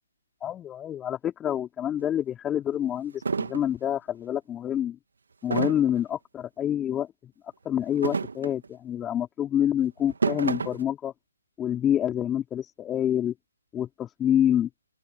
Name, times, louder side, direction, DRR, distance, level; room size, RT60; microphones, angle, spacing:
voice 1, 0.4-5.0 5.4-7.3 7.6-11.1 11.6-13.3 13.7-14.7, left 10 dB, 15° left, 3.2 m, -27 dB
sound 1, 2.0-2.1 2.7-2.8 3.2-3.7 5.5-6.0 7.9-8.7 10.0-10.8, right 5 dB, 65° right, 2.7 m, -29 dB
open air
figure-of-eight pair, 140°, 0 cm